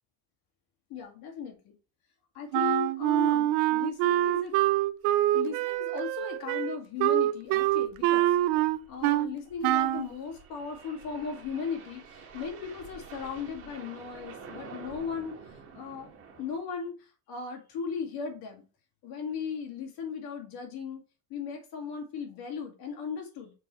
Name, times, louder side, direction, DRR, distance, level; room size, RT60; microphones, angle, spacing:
voice 1, 0.9-1.7 2.3-4.5 5.3-16.1 16.4-18.6 19.0-21.0 21.3-23.5, left 6 dB, 65° left, 2 dB, 2.3 m, -37 dB
Wind instrument woodwind instrument, 2.5-9.3 9.6-10.1, right 15 dB, 85° right, 0.6 m, -25 dB
sound 1, 4.2-4.4 4.6-4.7 5.1-5.2 5.7-5.9 7.3-16.6, right 5 dB, 35° right, 1.8 m, -49 dB
7.3 x 4.6 x 3.1 m, 0.34 s
cardioid pair, 170°, 38 cm